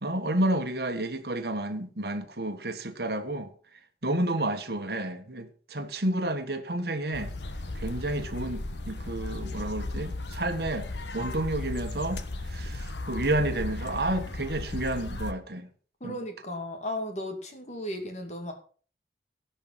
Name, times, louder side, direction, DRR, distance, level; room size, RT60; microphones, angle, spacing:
voice 1, 0.0-3.5 4.0-7.3 7.7-10.9 11.1-15.7 16.0-16.2, right 1 dB, 65° right, 1.5 m, -30 dB
sound 1, 7.1-15.3, left 2 dB, 85° left, 1.3 m, -36 dB
voice 2, 16.0-18.5, left 1 dB, 40° left, 2.5 m, -35 dB
17.5 x 5.8 x 5.7 m
head